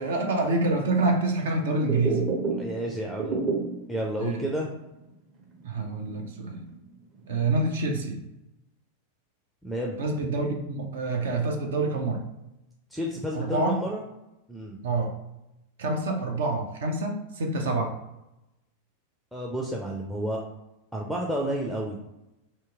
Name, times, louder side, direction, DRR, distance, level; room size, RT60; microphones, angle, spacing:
voice 1, 0.0-2.3 4.2-4.5 5.6-6.7 7.3-8.2 10.0-12.2 13.3-13.7 14.8-15.2 15.8-17.9, right 2 dB, 60° right, 3 dB, 0.5 m, -27 dB
sound 1, 1.9-3.9 4.3-4.4 4.8-4.9 5.4-6.8 7.2-7.8, right 4 dB, 30° right, 0.8 m, -30 dB
voice 2, 2.5-3.4 3.9-4.7 9.6-10.0 12.9-14.0 14.5-14.8 19.3-20.4 20.9-22.0, equal, ahead, -1 dB, 0.4 m, -31 dB
2.9 x 2.9 x 3.5 m, 0.92 s
figure-of-eight pair, 90°, 0 cm